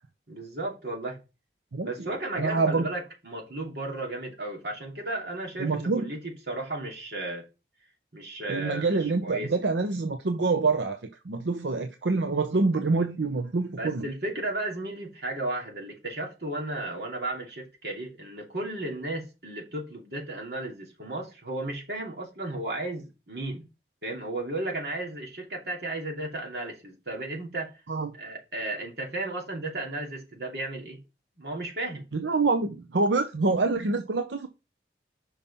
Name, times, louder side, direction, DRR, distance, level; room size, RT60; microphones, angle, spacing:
voice 1, 0.3-1.2 1.8-6.2 6.5-7.5 8.1-9.5 13.8-23.7 24.0-27.7 28.1-31.0 31.4-32.0, right 2 dB, 65° right, 2.8 m, -34 dB
voice 2, 1.7-2.1 2.4-2.9 5.6-6.1 8.5-14.0 27.9-28.1 32.1-34.5, right 3 dB, 90° right, 0.7 m, -26 dB
5.7 x 5.3 x 4.2 m
head